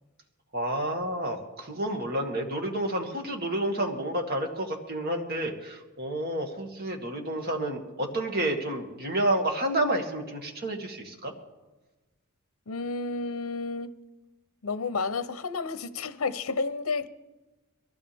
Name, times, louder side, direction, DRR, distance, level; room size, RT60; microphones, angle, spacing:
voice 1, 0.5-11.3, right 1 dB, 45° right, 2.2 m, -30 dB
voice 2, 12.7-13.9 14.6-17.1, left 4 dB, 75° left, 0.8 m, -31 dB
22.0 x 15.5 x 3.5 m
head